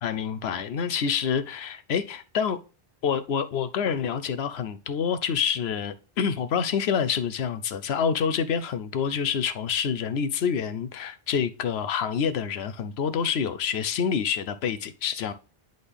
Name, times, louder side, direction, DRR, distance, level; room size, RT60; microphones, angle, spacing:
voice 1, 0.0-2.6 3.0-15.3, left 7 dB, 75° left, 0.9 m, -27 dB
9.9 x 3.9 x 3.4 m
omnidirectional pair, 1.1 m